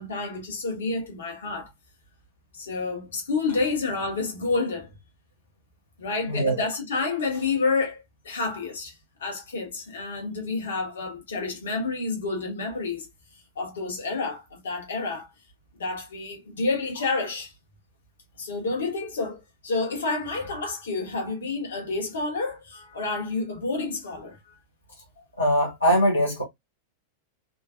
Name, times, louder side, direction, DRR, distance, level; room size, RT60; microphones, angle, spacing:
voice 1, 0.0-1.7 2.5-4.9 6.0-8.9 9.2-13.1 13.6-15.3 15.8-17.5 18.4-24.4, left 3 dB, 65° left, 1.3 m, -29 dB
voice 2, 6.3-6.7 25.4-26.4, equal, 80° left, 0.9 m, -22 dB
3.7 x 2.6 x 2.4 m
figure-of-eight pair, 90°, 0 cm